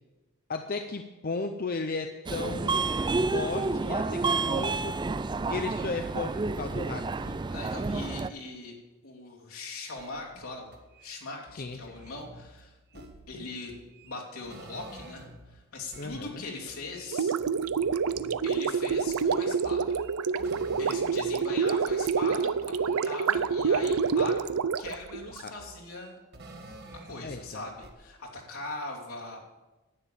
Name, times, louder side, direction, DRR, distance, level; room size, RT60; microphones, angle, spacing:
voice 1, 0.5-2.9 3.3-5.0 5.5-7.4 11.5-12.0 16.0-16.4 25.4-25.5 27.2-27.6, left 3 dB, 40° left, 6 dB, 0.6 m, -35 dB
Subway metro underground, 2.3-8.3, right 3 dB, 20° right, 0.3 m, -30 dB
voice 2, 7.5-8.7 9.0-10.7 11.0-13.7 14.0-17.3 18.4-20.0 20.5-24.4 24.8-26.2 27.0-29.5, left 3 dB, 75° left, -2 dB, 3.1 m, -41 dB
sound 1, 9.9-15.6 15.9-21.6 21.9-24.5 24.8-27.5 27.8-27.9, right 1 dB, 45° right, 1.6 m, -50 dB
Gurgling, 17.1-25.5, right 5 dB, 80° right, 0.5 m, -27 dB
11.0 x 9.5 x 7.1 m, 1.1 s
head